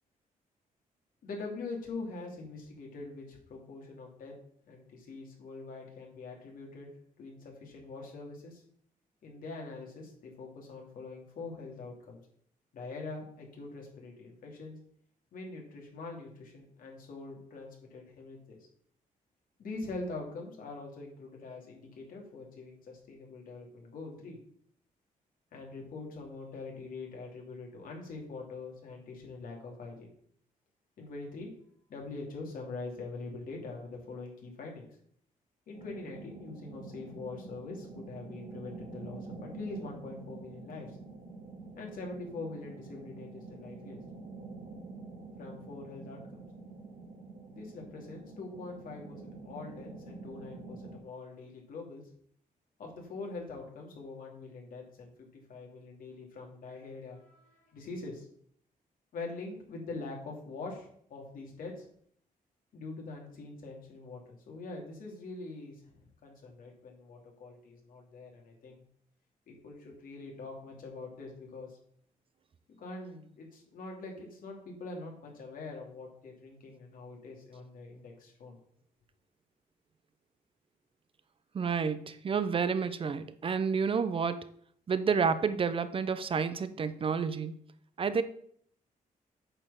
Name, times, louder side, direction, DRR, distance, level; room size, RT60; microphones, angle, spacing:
voice 1, 1.2-4.4 4.7-6.9 7.2-8.6 9.2-12.2 12.7-14.8 15.3-18.6 19.6-24.4 25.5-30.1 31.0-31.5 31.9-34.9 35.7-41.0 41.8-44.0 45.4-46.4 47.5-52.0 52.8-58.3 59.1-61.9 62.7-68.8 69.5-71.8 72.8-78.6, left 3 dB, 75° left, 2.8 m, -44 dB
sound 1, 35.7-51.0, right 3 dB, 85° right, 2.2 m, -47 dB
voice 2, 81.5-84.5 84.9-87.5 88.0-88.2, right 6 dB, 40° right, 0.6 m, -30 dB
8.8 x 4.3 x 7.0 m
cardioid pair, 130°, 15 cm